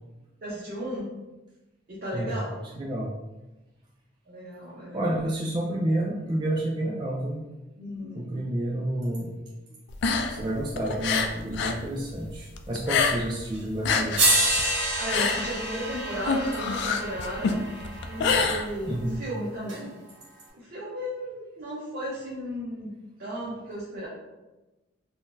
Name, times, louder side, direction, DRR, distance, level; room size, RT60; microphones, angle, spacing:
voice 1, 0.4-1.1 1.9-2.5 4.3-5.0 7.8-8.2 15.0-17.6 18.1-20.0 20.5-22.9 23.2-24.1, equal, 55° right, -7 dB, 0.8 m, -34 dB
voice 2, 2.7-3.1 4.9-7.4 8.1-9.3 10.3-14.2 18.9-19.2, right 1 dB, 25° right, -5 dB, 0.4 m, -29 dB
sound 1, 9.9-11.8 12.1-13.4 13.7-19.2, left 5 dB, 65° left, 0.3 m, -27 dB
sound 2, 13.5-13.6 14.1-18.3 19.7-19.8, right 1 dB, 80° right, 1.1 m, -28 dB
3.6 x 2.2 x 2.6 m, 1.1 s
head